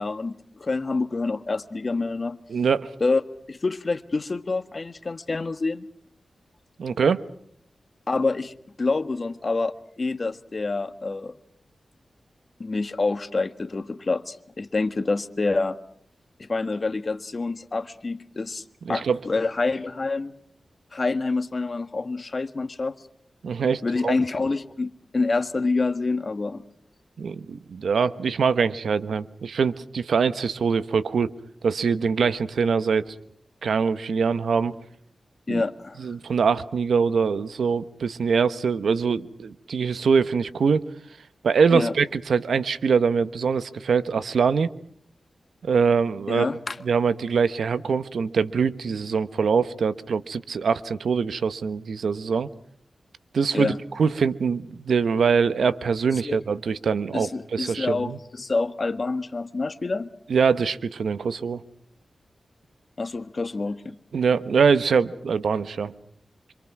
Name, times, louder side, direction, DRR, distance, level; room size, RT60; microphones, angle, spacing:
voice 1, 0.0-2.4 3.0-3.2 3.5-5.8 8.1-11.3 12.6-15.8 16.4-18.6 18.9-20.3 20.9-23.0 23.8-26.6 35.5-36.1 41.7-41.9 46.3-46.8 53.5-53.8 56.1-56.4 57.1-60.1 63.0-64.0, left 3 dB, 45° left, 11 dB, 1.6 m, -27 dB
voice 2, 2.5-2.9 6.8-7.2 18.8-19.2 23.4-24.1 27.2-31.3 31.6-33.1 33.6-34.7 35.5-35.6 36.0-40.8 41.4-44.7 45.6-46.5 46.8-52.5 53.3-58.2 60.3-61.6 64.1-65.9, right 5 dB, 85° right, 13 dB, 1.2 m, -23 dB
26.5 x 26.5 x 6.1 m, 0.66 s
cardioid pair, 70°, 0 cm